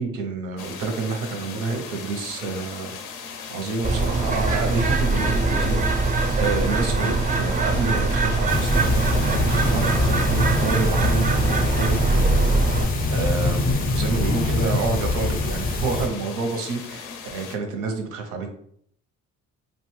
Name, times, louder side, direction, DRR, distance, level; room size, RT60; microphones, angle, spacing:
voice 1, 0.0-3.0 3.5-12.8 13.1-18.5, right 4 dB, 85° right, 4 dB, 0.7 m, -29 dB
sound 1, 0.6-17.6, left 6 dB, 90° left, 0.5 m, -38 dB
Bird, 3.8-12.8, right 3 dB, 30° right, 0.3 m, -22 dB
sound 2, 8.5-16.1, left 2 dB, 30° left, 0.5 m, -24 dB
2.7 x 2.2 x 3.0 m, 0.66 s
cardioid pair, 90°, 30 cm